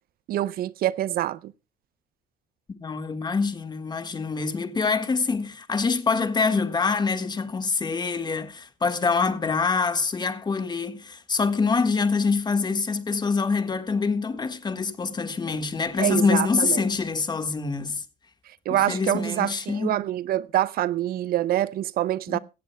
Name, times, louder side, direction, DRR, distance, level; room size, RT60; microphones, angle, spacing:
voice 1, 0.3-1.5 16.0-16.8 18.7-22.4, right 13 dB, 60° right, 0.5 m, -25 dB
voice 2, 2.8-18.0 18.7-20.0 22.3-22.4, left 4 dB, 25° left, 1.5 m, -25 dB
17.0 x 14.5 x 2.2 m
cardioid pair, 110°, 17 cm